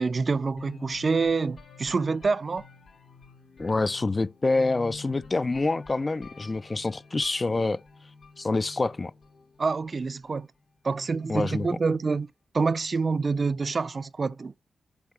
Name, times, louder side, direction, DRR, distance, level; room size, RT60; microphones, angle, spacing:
voice 1, 0.0-2.6 9.6-10.5 10.8-12.3 12.5-14.5, right 4 dB, 50° right, 0.4 m, -27 dB
sound 1, 0.6-10.4, left 4 dB, 70° left, 2.8 m, -48 dB
voice 2, 3.6-7.8 8.4-9.1 11.3-11.7, left 3 dB, 35° left, 0.3 m, -26 dB
8.4 x 5.9 x 3.3 m
cardioid pair, 65°, 0 cm